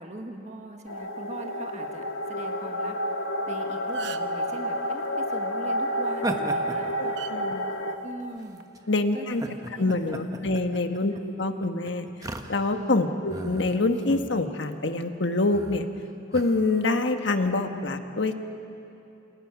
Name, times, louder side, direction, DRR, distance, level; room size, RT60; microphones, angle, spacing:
voice 1, 0.0-3.0 3.5-7.1 8.0-8.6 9.1-10.5 13.3-13.5, right 1 dB, 35° right, 3 dB, 1.6 m, -41 dB
sound 1, 0.9-8.0, equal, 80° left, 1.6 m, -30 dB
sound 2, 3.4-3.5 3.8-4.4 6.1-6.3 7.2-7.3 8.4-8.6, right 6 dB, 55° right, 0.8 m, -39 dB
sound 3, 6.1-7.9 8.6-8.8 9.3-12.9 13.3-14.3 14.6-14.9 15.5-15.9 16.3-17.0, right 1 dB, 15° right, 1.1 m, -37 dB
voice 2, 7.0-7.7 8.9-9.4 9.8-12.1 12.5-15.9 16.3-18.4, left 2 dB, 60° left, 6 dB, 1.4 m, -26 dB
28.5 x 27.5 x 6.1 m, 2.8 s
head